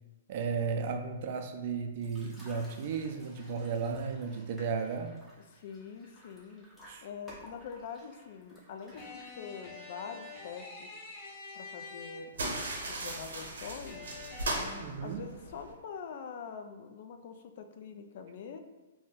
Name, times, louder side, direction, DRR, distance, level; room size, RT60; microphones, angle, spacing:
voice 1, 0.3-5.1 6.9-7.1 14.8-15.2, right 5 dB, 50° right, 5 dB, 0.4 m, -34 dB
sound 1, 2.0-9.7, equal, 5° left, 0.7 m, -55 dB
voice 2, 5.5-6.7 7.0-10.9 11.5-14.1 15.0-18.6, left 6 dB, 55° left, 6 dB, 0.3 m, -44 dB
sound 2, 8.9-12.6 13.9-14.8, left 4 dB, 40° left, 0.9 m, -47 dB
sound 3, 12.3-15.7, right 2 dB, 80° right, 0.7 m, -37 dB
2.5 x 2.1 x 3.7 m, 1.2 s
hypercardioid pair, 140°, 0 cm